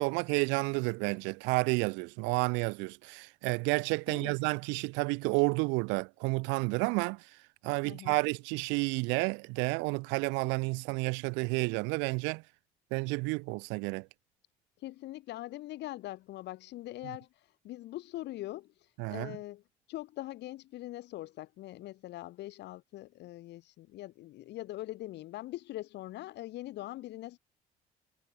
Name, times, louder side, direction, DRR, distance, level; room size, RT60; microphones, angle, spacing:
voice 1, 0.0-7.2 7.6-12.4 12.9-14.1 19.0-19.4, right 29 dB, 75° right, 0.8 m, -30 dB
voice 2, 4.1-4.4 7.8-8.2 14.8-17.3 17.6-18.7 19.1-19.6 19.9-27.4, left 16 dB, 65° left, 1.5 m, -42 dB
hypercardioid pair, 55°, 19 cm